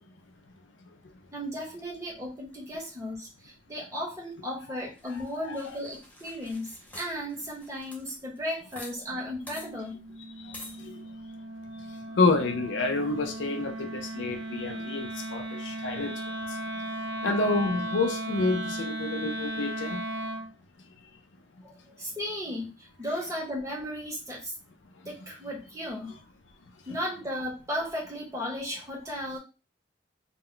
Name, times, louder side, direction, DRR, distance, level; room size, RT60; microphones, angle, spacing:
voice 1, 1.3-10.0 21.6-24.5 25.0-26.2 26.9-29.4, equal, 15° right, 0.8 m, -35 dB
sound 1, 5.0-8.9 9.2-9.3 9.5-9.7 10.5-10.8, left 1 dB, 10° left, 0.5 m, -47 dB
voice 2, 5.3-5.8 10.4-11.0 11.7-16.6 17.2-20.0 26.9-27.0, left 3 dB, 75° left, 0.5 m, -29 dB
Wind instrument woodwind instrument, 9.0-20.5, right 1 dB, 70° right, 0.5 m, -36 dB
2.2 x 2.1 x 3.7 m
head